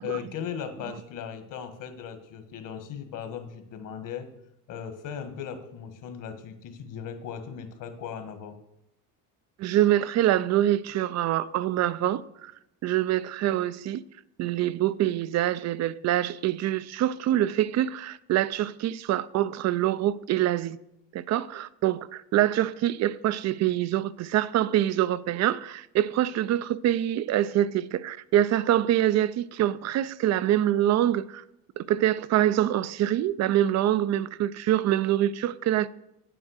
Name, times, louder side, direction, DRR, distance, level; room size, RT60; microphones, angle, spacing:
voice 1, 0.0-4.3 4.7-8.6, left 8 dB, 55° left, 1.6 m, -37 dB
voice 2, 9.6-12.5 12.8-14.0 14.4-20.8 21.1-31.4 31.8-35.9, right 12 dB, 45° right, 0.5 m, -25 dB
8.9 x 8.8 x 6.5 m
cardioid pair, 130°, 38 cm